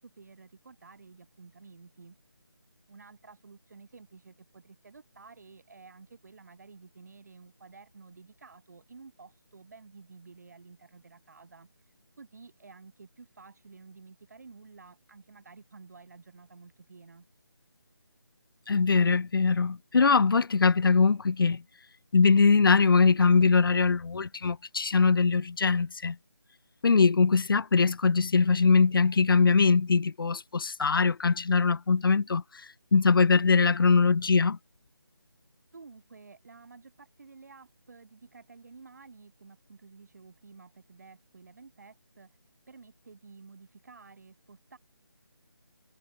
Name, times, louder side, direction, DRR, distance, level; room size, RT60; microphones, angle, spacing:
voice 1, 0.0-2.2 2.9-17.2 35.7-42.4 42.7-44.8, right 4 dB, 40° right, 7.5 m, -52 dB
voice 2, 18.7-21.6 22.1-26.2 26.8-32.4 32.9-34.6, left 4 dB, 60° left, 0.4 m, -22 dB
figure-of-eight pair, 175°, 13 cm